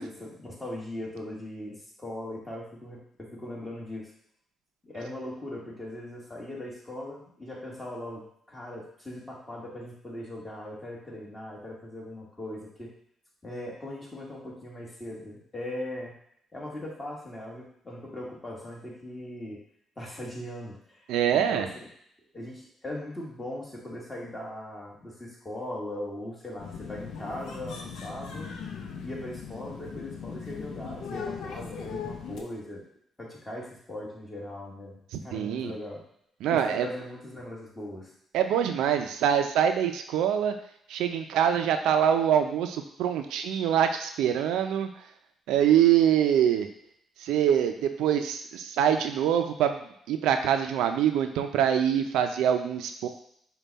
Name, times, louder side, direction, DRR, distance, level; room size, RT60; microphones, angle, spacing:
voice 1, 0.0-4.1 4.8-12.9 13.4-16.1 16.5-19.6 20.0-21.9 22.3-28.5 29.0-32.8 33.2-36.0 36.5-38.1, left 1 dB, 20° left, -4 dB, 1.6 m, -39 dB
voice 2, 21.1-21.7 35.1-35.7 36.4-36.9 38.3-40.5 40.9-44.9 45.5-46.7 47.2-49.8 50.1-53.1, right 9 dB, 90° right, 7 dB, 0.4 m, -24 dB
sound 1, 26.6-32.4, left 6 dB, 75° left, 0.7 m, -39 dB
5.5 x 2.3 x 4.0 m, 0.70 s
cardioid pair, 90°, 0 cm